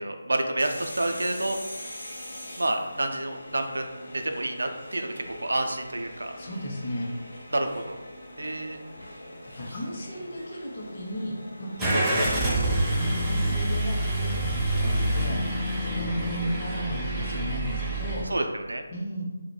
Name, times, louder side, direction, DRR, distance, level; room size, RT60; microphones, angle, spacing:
voice 1, 0.0-1.6 2.6-6.3 7.5-8.0 8.4-8.8 11.9-12.1 17.1-17.6 18.2-18.8, right 1 dB, 80° right, 5 dB, 0.3 m, -29 dB
sound 1, 0.6-18.4, left 1 dB, 70° left, 0.7 m, -43 dB
voice 2, 6.4-7.1 9.6-11.3 11.6-12.6 13.0-15.4 15.8-18.2 18.9-19.2, equal, 40° left, -2 dB, 0.6 m, -34 dB
Car / Engine starting, 11.8-18.2, right 1 dB, 10° right, 0.4 m, -27 dB
2.2 x 2.1 x 3.0 m, 1.1 s
figure-of-eight pair, 160°, 0 cm